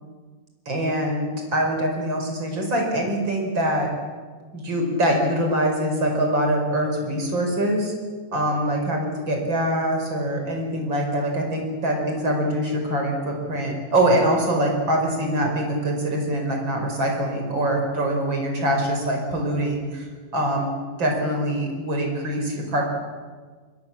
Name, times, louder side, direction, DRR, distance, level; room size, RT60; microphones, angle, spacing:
voice 1, 0.7-3.9 4.5-7.9 8.3-20.1 20.3-20.7 21.0-22.8, right 1 dB, 70° right, 2 dB, 6.0 m, -24 dB
28.0 x 21.5 x 7.4 m, 1.5 s
omnidirectional pair, 2.2 m